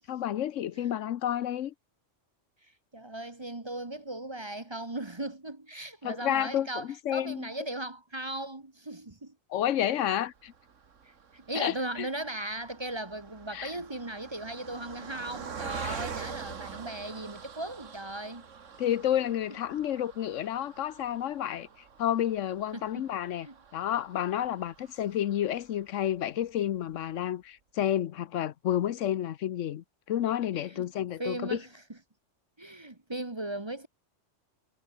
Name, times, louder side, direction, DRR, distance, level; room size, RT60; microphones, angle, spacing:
voice 1, 0.1-1.7 6.0-7.5 9.5-10.5 11.5-12.1 13.5-13.7 15.8-16.0 18.8-21.7 22.0-23.5 23.7-31.6, left 11 dB, 80° left, 1.1 m, -30 dB
voice 2, 2.9-9.3 11.0-18.5 19.2-19.3 22.7-23.1 23.4-23.6 30.6-30.8 31.2-32.0 32.6-33.9, right 1 dB, 20° right, 1.4 m, -38 dB
Car passing by, 10.4-25.9 26.4-26.5 26.8-26.9, right 6 dB, 85° right, 1.9 m, -45 dB
omnidirectional pair, 1.3 m